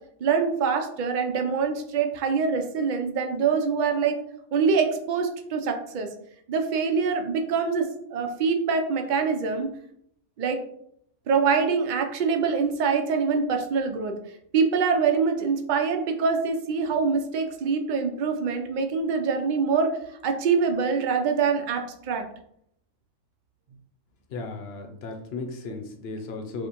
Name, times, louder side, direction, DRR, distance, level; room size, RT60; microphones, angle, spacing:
voice 1, 0.2-4.2 4.5-6.1 6.5-9.7 10.4-10.6 11.3-14.2 14.5-20.0 20.2-22.2, right 5 dB, 70° right, 5 dB, 0.4 m, -24 dB
voice 2, 24.3-26.7, left 3 dB, 60° left, 4 dB, 0.8 m, -35 dB
4.9 x 2.1 x 2.9 m, 0.72 s
omnidirectional pair, 1.3 m